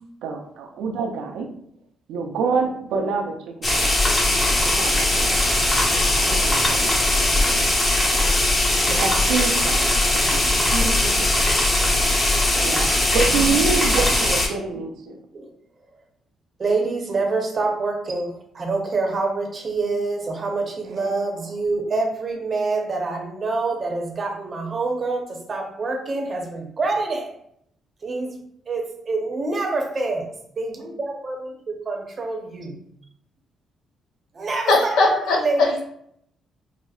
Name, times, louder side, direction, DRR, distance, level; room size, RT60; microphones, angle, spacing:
voice 1, 0.2-1.5 2.1-3.5 3.8-4.0 4.7-5.7 6.2-7.8 8.9-11.3 12.6-15.2, right 5 dB, 85° right, 3 dB, 0.5 m, -27 dB
machine metal cutter grinder rollers switch on off spark, 3.6-14.5, left 1 dB, 25° left, 0.9 m, -20 dB
voice 2, 16.6-27.3 28.0-28.3 28.7-30.3 30.6-31.5 31.9-32.8 34.3-35.8, right 3 dB, 40° right, 2 dB, 0.7 m, -26 dB
voice 3, 34.7-35.8, left 3 dB, 85° left, 0 dB, 0.7 m, -20 dB
4.8 x 2.0 x 2.3 m, 0.70 s
cardioid pair, 90°, 0 cm